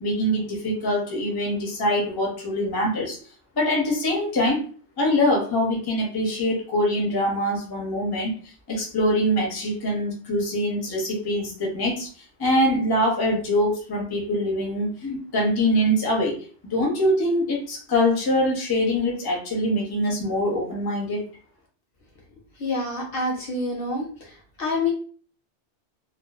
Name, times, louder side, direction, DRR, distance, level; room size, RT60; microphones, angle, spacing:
voice 1, 0.0-3.2 3.6-4.6 5.0-8.3 8.7-12.1 12.4-16.4 16.6-21.2, equal, 25° left, -1 dB, 0.5 m, -23 dB
voice 2, 22.6-24.1 24.6-24.9, left 2 dB, 60° left, 0 dB, 0.7 m, -26 dB
2.4 x 2.2 x 2.3 m, 0.42 s
omnidirectional pair, 1.2 m